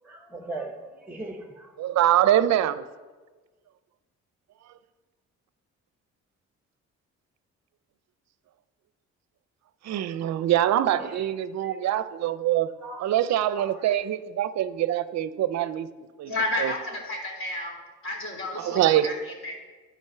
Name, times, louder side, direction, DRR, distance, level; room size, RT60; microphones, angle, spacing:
voice 1, 0.0-1.7 11.0-11.3 11.6-11.8 12.8-13.1 13.5-13.9, right 2 dB, 5° right, 1.1 m, -39 dB
voice 2, 1.8-2.8 9.8-12.7 13.0-15.9 16.2-16.3 16.6-16.7 18.6-19.1, right 12 dB, 60° right, 0.6 m, -24 dB
voice 3, 16.3-17.7 18.0-19.5, left 2 dB, 45° left, 3.5 m, -31 dB
10.5 x 5.1 x 6.7 m
cardioid pair, 90°, 30 cm